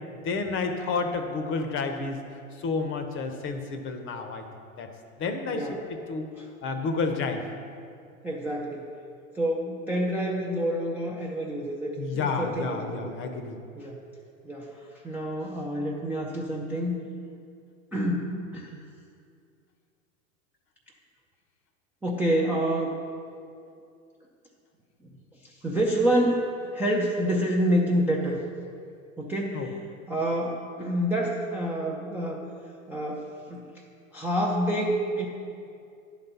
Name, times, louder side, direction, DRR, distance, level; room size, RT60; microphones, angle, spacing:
voice 1, 0.2-4.4 4.8-4.9 5.2-5.6 5.9-6.3 6.6-7.4 12.0-13.6 29.5-29.7, left 4 dB, 30° left, 7 dB, 0.7 m, -30 dB
voice 2, 8.2-8.9 9.3-13.4 13.8-14.0 14.4-17.1 17.9-18.8 22.0-22.9 25.4-26.5 26.7-28.4 29.2-29.8 30.1-32.4 32.9-33.6 34.1-35.3, right 1 dB, 5° right, -4 dB, 0.4 m, -28 dB
10.5 x 4.1 x 5.6 m, 2.4 s
hypercardioid pair, 95°, 42 cm